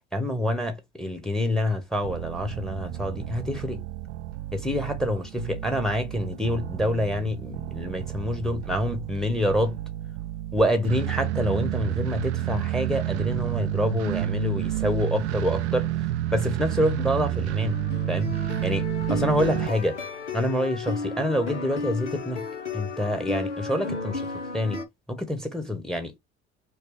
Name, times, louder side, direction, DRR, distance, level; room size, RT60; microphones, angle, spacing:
voice 1, 0.1-3.8 4.5-9.8 10.5-15.9 16.3-17.8 18.1-18.3 18.6-20.0 20.3-22.4 22.7-24.2 24.5-24.8 25.1-26.2, left 1 dB, ahead, 1.1 m, -27 dB
sound 1, 2.0-19.7, right 12 dB, 75° right, 0.5 m, -30 dB
sound 2, 16.9-24.8, left 4 dB, 85° left, 0.8 m, -34 dB
4.5 x 2.3 x 3.3 m
figure-of-eight pair, 55°, 35 cm